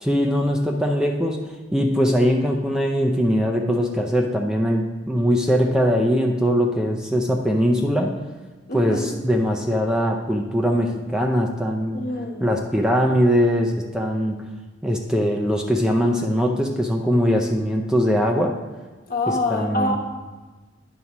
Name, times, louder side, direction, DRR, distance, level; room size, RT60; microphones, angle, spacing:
voice 1, 0.0-8.1 8.7-12.0 12.4-14.4 14.8-18.6 19.3-20.0, equal, 5° right, 1 dB, 0.5 m, -21 dB
voice 2, 8.7-9.1 11.9-12.5 19.1-20.0, left 2 dB, 50° left, 1 dB, 1.2 m, -25 dB
9.4 x 4.1 x 5.9 m, 1.3 s
head